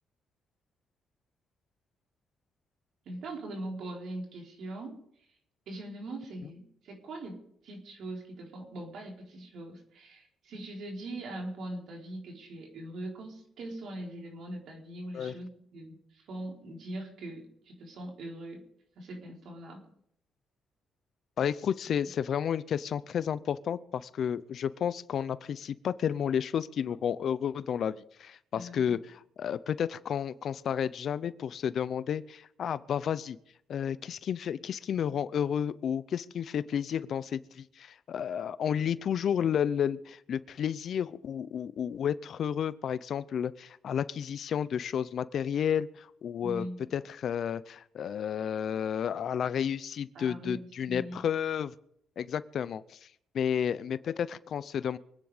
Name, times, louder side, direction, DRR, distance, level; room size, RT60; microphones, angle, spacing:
voice 1, 3.0-5.0 5.7-18.6 19.0-19.9 28.5-29.0 46.4-46.8 50.1-51.2, right 1 dB, 70° right, 0 dB, 4.3 m, -41 dB
voice 2, 21.4-33.4 33.7-46.7 46.9-51.7 52.2-53.0 53.3-55.0, left 8 dB, 60° left, 17 dB, 0.6 m, -31 dB
24.5 x 9.6 x 5.0 m, 0.71 s
cardioid pair, 90°, 0 cm